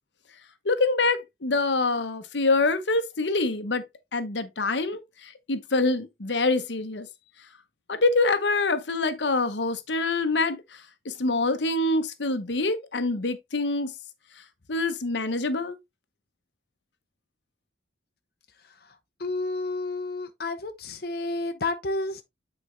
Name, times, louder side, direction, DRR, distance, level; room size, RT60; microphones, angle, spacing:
voice 1, 0.6-3.8 4.1-7.1 7.9-13.9 14.7-15.8, left 3 dB, 85° left, 1.0 m, -25 dB
voice 2, 18.6-22.2, left 2 dB, 60° left, 0.9 m, -31 dB
8.5 x 4.4 x 3.2 m
head